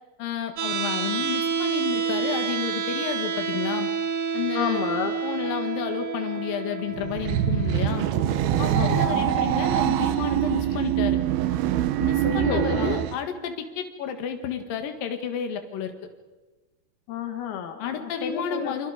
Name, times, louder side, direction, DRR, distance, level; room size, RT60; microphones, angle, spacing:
voice 1, 0.2-3.9 4.3-4.8 5.2-8.1 8.6-11.2 12.0-15.9 17.8-18.9, left 8 dB, 70° left, 6 dB, 3.5 m, -31 dB
sound 1, 0.6-12.6, right 6 dB, 65° right, 1.3 m, -31 dB
voice 2, 4.5-5.2 8.7-9.3 12.2-13.0 17.1-18.8, left 8 dB, 85° left, 6 dB, 3.5 m, -31 dB
sound 2, 7.0-13.2, right 12 dB, 85° right, 2.9 m, -24 dB
29.0 x 26.0 x 5.1 m, 1.2 s
omnidirectional pair, 4.4 m